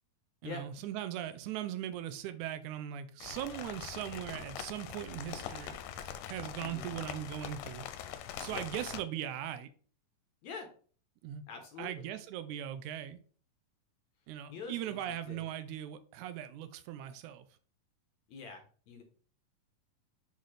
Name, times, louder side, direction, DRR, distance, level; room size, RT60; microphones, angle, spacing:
voice 1, 0.4-7.8 8.4-9.7 11.2-11.4 11.8-13.2 14.3-17.4, right 11 dB, 85° right, 1.7 m, -39 dB
sound 1, 3.2-9.0, left 9 dB, 85° left, 2.3 m, -43 dB
voice 2, 6.6-6.9 8.5-8.7 10.4-10.7 11.5-12.0 14.5-15.5 18.3-19.0, left 5 dB, 70° left, 1.8 m, -45 dB
8.2 x 4.0 x 3.2 m
omnidirectional pair, 4.0 m